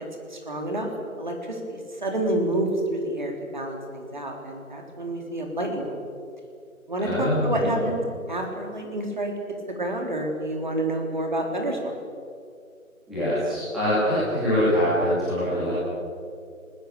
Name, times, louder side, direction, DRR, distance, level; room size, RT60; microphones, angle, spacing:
voice 1, 0.3-0.9 1.2-5.8 6.9-8.0 8.3-9.3 9.8-11.9, right 1 dB, 35° right, 2 dB, 3.6 m, -28 dB
voice 2, 7.0-7.8 13.1-15.7, equal, ahead, -16 dB, 2.6 m, -24 dB
28.0 x 20.5 x 6.9 m, 2.4 s
figure-of-eight pair, 175°, 43 cm